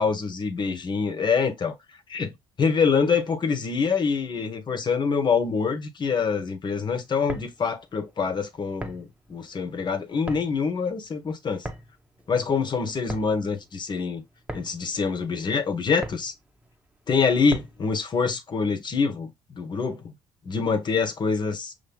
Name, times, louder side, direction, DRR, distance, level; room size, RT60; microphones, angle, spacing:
voice 1, 0.0-1.7 2.1-11.7 12.3-14.2 14.5-16.3 17.1-20.1 20.4-21.7, left 5 dB, 40° left, 1.3 m, -25 dB
sound 1, 7.1-18.0, right 1 dB, 10° right, 1.1 m, -41 dB
5.7 x 2.9 x 2.4 m
supercardioid pair, 65°, 12 cm